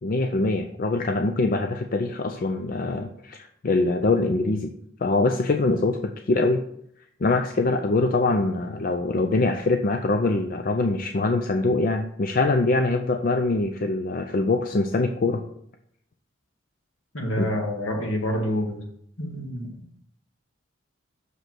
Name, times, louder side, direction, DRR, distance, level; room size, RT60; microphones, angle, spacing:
voice 1, 0.0-4.7 5.0-6.6 7.2-15.4 17.4-17.5, left 3 dB, 45° left, 6 dB, 0.5 m, -23 dB
voice 2, 17.1-18.8 19.2-19.7, equal, 70° left, 0 dB, 2.0 m, -27 dB
6.4 x 5.2 x 6.0 m, 0.70 s
head